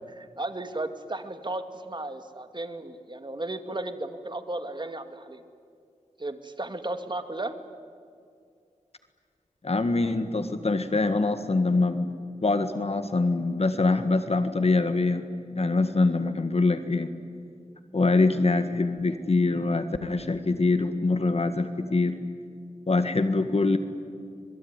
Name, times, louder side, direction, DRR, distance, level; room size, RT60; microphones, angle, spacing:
voice 1, 0.1-5.4 6.2-7.6, right 2 dB, 35° right, 8 dB, 2.3 m, -34 dB
voice 2, 9.6-12.1 12.4-15.2 15.5-17.1 17.9-22.1 22.9-23.8, left 3 dB, 50° left, 9 dB, 1.6 m, -24 dB
26.0 x 22.0 x 9.7 m, 2.3 s
wide cardioid pair, 60°, 13 cm